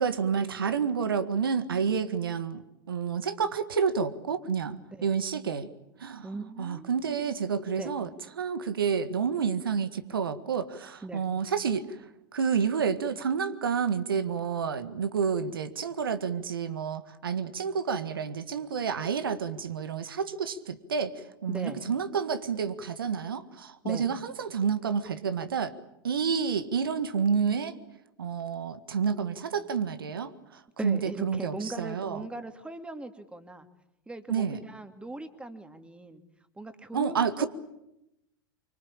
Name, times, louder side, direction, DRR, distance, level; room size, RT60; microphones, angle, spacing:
voice 1, 0.0-2.6 2.9-5.7 6.0-6.3 6.6-8.1 8.4-11.9 12.3-25.7 26.0-27.8 28.2-32.2 34.3-34.6 36.9-37.5, right 6 dB, 75° right, 11 dB, 1.8 m, -29 dB
voice 2, 6.2-7.4 7.8-7.9 11.0-11.3 21.5-21.8 23.8-24.1 30.8-33.7 34.1-36.2 36.5-37.5, right 2 dB, 10° right, 8 dB, 2.6 m, -39 dB
25.0 x 24.5 x 8.8 m, 0.88 s
figure-of-eight pair, 85°, 12 cm